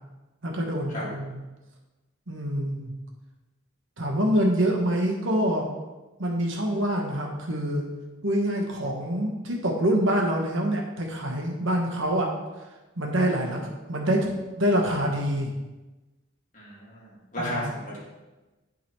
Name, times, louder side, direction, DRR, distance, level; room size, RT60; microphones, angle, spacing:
voice 1, 0.4-1.4 2.3-3.0 4.0-5.7 6.2-7.9 8.2-12.3 13.0-13.6 13.9-14.3 14.6-15.5 17.4-17.6, equal, 65° right, 0 dB, 1.2 m, -25 dB
voice 2, 16.5-18.0, equal, 35° left, -6 dB, 2.1 m, -34 dB
11.5 x 3.9 x 3.1 m, 1.1 s
head